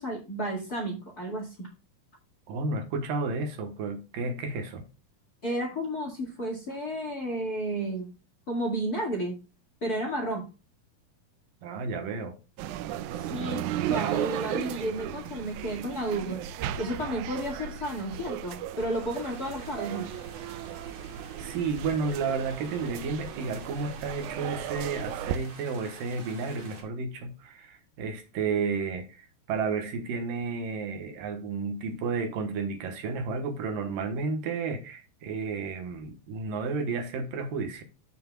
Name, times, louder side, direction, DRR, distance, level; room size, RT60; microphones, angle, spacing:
voice 1, 0.0-1.7 5.4-8.1 8.5-9.4 9.8-10.5 13.1-16.4 16.8-20.1, right 1 dB, 30° left, 2.1 m, -32 dB
voice 2, 2.5-4.8 11.6-12.4 21.4-37.8, right 4 dB, 75° right, 2.8 m, -32 dB
sound 1, 12.6-25.4, right 11 dB, 90° right, 1.7 m, -35 dB
sound 2, 19.1-26.8, right 4 dB, 40° right, 2.6 m, -49 dB
14.0 x 5.9 x 2.4 m
omnidirectional pair, 4.2 m